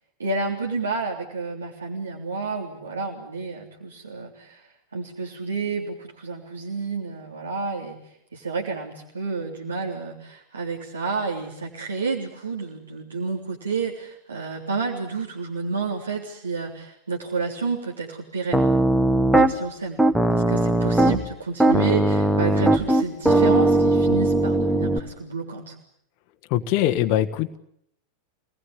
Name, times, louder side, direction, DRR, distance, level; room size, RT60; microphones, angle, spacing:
voice 1, 0.2-8.0 8.3-18.7 19.3-25.8, right 4 dB, 75° right, -3 dB, 3.5 m, -30 dB
Piano, 18.5-19.5 20.0-21.2 21.6-25.0, right 1 dB, 5° right, 1.7 m, -19 dB
voice 2, 26.5-27.6, left 12 dB, 45° left, 6 dB, 1.5 m, -22 dB
27.5 x 19.5 x 10.0 m, 0.72 s
figure-of-eight pair, 90°, 0 cm